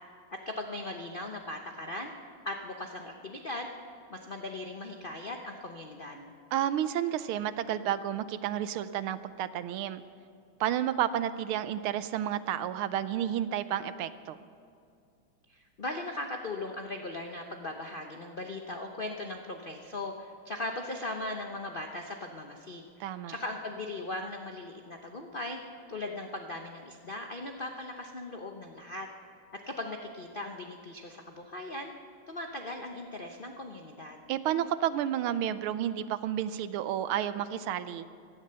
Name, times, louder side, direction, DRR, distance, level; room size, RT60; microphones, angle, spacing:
voice 1, 0.5-2.1 2.4-3.7 4.1-6.3 15.5-25.6 25.9-29.1 29.6-31.9 32.3-34.2, left 2 dB, 70° left, 3 dB, 0.5 m, -39 dB
voice 2, 6.5-10.0 10.6-14.4 23.0-23.3 34.3-38.0, right 11 dB, 80° right, 13 dB, 1.5 m, -31 dB
16.5 x 13.0 x 6.8 m, 2.3 s
omnidirectional pair, 2.4 m